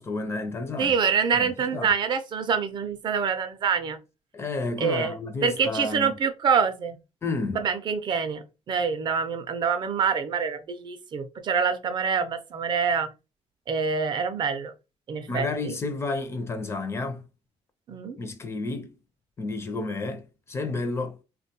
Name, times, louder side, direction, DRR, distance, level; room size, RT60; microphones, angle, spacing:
voice 1, 0.0-0.9 1.3-1.9 4.3-6.2 7.2-7.7 15.3-17.2 18.2-18.9 19.4-21.2, left 3 dB, 25° left, 0.4 m, -31 dB
voice 2, 0.8-4.0 4.8-5.1 5.4-7.0 7.5-13.1 13.7-14.7 15.1-15.7 17.9-18.2, right 6 dB, 40° right, 0.4 m, -26 dB
3.4 x 2.2 x 2.7 m
cardioid pair, 170°, 11 cm